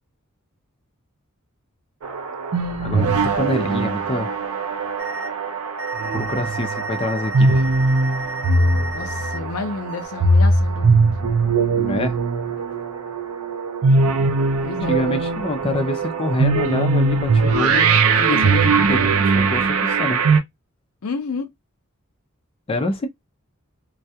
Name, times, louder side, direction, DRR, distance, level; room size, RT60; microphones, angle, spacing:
sound 1, 2.0-20.4, right 3 dB, 85° right, 0.5 m, -20 dB
voice 1, 2.8-4.3 6.1-7.6 11.8-12.2 14.9-20.2 22.7-23.1, left 1 dB, 25° left, 0.4 m, -26 dB
sound 2, 5.0-5.3 5.8-9.4 9.9-10.1, equal, 50° right, 0.9 m, -33 dB
voice 2, 8.9-11.2 14.6-15.0 21.0-21.5, left 4 dB, 85° left, 0.5 m, -30 dB
2.2 x 2.2 x 2.7 m
head